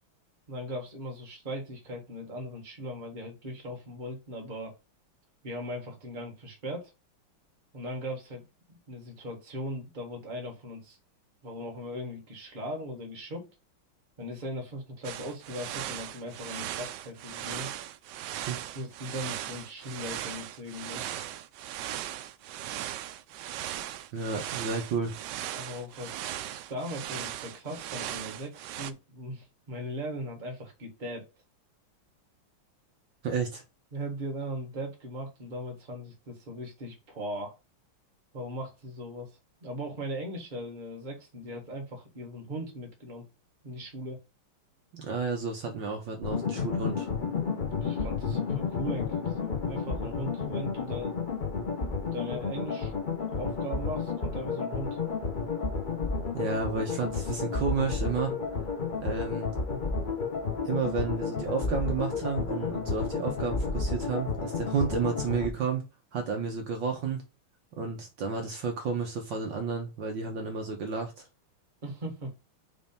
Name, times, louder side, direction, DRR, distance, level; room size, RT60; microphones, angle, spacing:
voice 1, 0.5-4.7 5.4-6.9 7.7-8.4 8.7-11.0 11.4-13.5 14.2-17.7 18.7-21.0 25.5-31.3 33.9-37.6 38.3-39.3 39.6-43.2 43.6-44.2 47.7-51.2 52.1-52.9 53.3-55.0 71.8-72.3, equal, 25° right, 1.5 m, -39 dB
sound 1, 15.0-28.9, right 12 dB, 80° right, 0.9 m, -38 dB
voice 2, 24.1-25.1 33.2-33.6 44.9-47.1 56.3-58.3 59.0-59.5 60.6-65.9 66.1-67.2 67.8-71.2, right 5 dB, 60° right, 1.7 m, -31 dB
sound 2, 46.2-65.5, left 5 dB, 80° left, 0.4 m, -31 dB
5.8 x 3.3 x 5.3 m
omnidirectional pair, 2.4 m